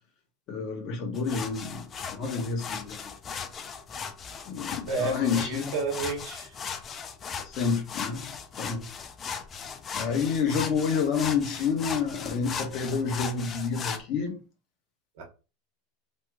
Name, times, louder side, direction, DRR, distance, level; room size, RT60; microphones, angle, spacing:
voice 1, 0.5-1.9 2.1-3.1 4.5-5.7 7.5-8.8 9.9-14.4, left 5 dB, 45° left, 1.2 m, -29 dB
sound 1, 1.1-14.0, left 6 dB, 30° left, 0.5 m, -37 dB
voice 2, 4.9-6.5 15.2-15.3, right 3 dB, 65° right, 1.3 m, -31 dB
3.3 x 3.0 x 2.4 m
supercardioid pair, 115°, 0 cm